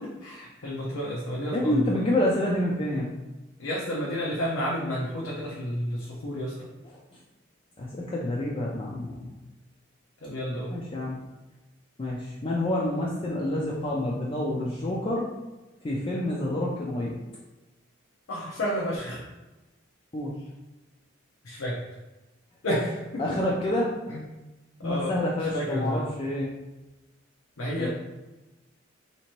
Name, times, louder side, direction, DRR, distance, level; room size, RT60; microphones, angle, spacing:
voice 1, 0.0-1.9 3.6-6.7 10.2-10.8 18.3-19.2 21.4-21.8 22.6-23.4 24.1-24.2 24.8-26.1 27.6-27.9, equal, 90° left, -5 dB, 0.7 m, -31 dB
voice 2, 1.5-3.1 7.8-9.1 10.7-11.2 12.0-15.3 15.8-17.1 20.1-20.3 23.2-23.9 24.8-26.5 27.8-27.9, left 1 dB, 25° left, -4 dB, 0.3 m, -28 dB
3.3 x 2.8 x 3.0 m, 1.1 s
head